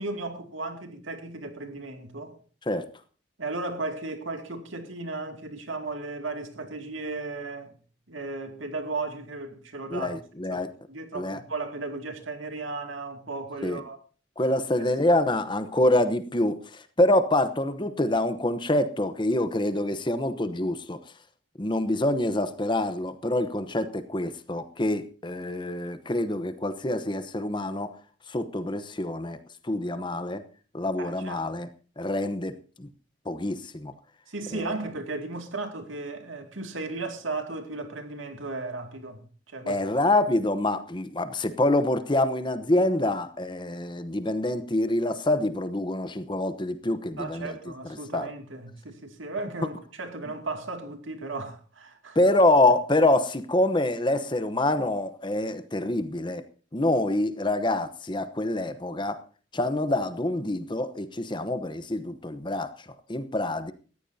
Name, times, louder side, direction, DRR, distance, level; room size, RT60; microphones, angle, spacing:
voice 1, 0.0-2.4 3.4-7.7 8.1-10.1 10.5-10.6 10.9-14.0 14.5-15.2 31.0-31.4 34.3-39.8 47.2-52.2, right 3 dB, 85° right, 2.4 m, -35 dB
voice 2, 9.9-10.7 11.1-11.4 13.6-13.8 14.4-21.0 21.6-27.9 28.3-29.4 29.6-30.4 30.7-31.7 32.0-32.9 33.3-33.9 34.5-34.7 39.7-47.6 47.8-48.3 52.1-56.4 56.7-59.2 59.5-62.7 63.1-63.7, left 1 dB, 25° left, 0.9 m, -26 dB
19.0 x 14.5 x 2.8 m
head